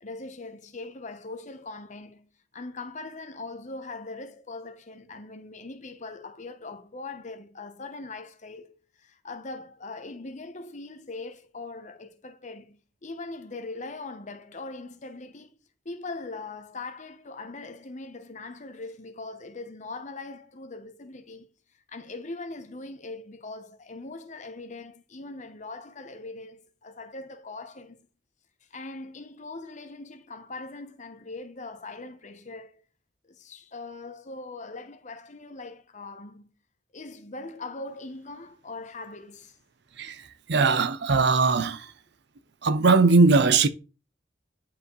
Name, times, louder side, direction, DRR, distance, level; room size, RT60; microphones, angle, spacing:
voice 1, 0.0-2.3 2.5-15.6 15.8-21.5 21.9-28.0 28.7-32.8 33.3-36.5 36.9-39.6, left 3 dB, 40° left, 0.9 m, -41 dB
voice 2, 40.0-41.9 42.6-43.7, right 4 dB, 65° right, 0.6 m, -20 dB
10.5 x 4.8 x 3.2 m
head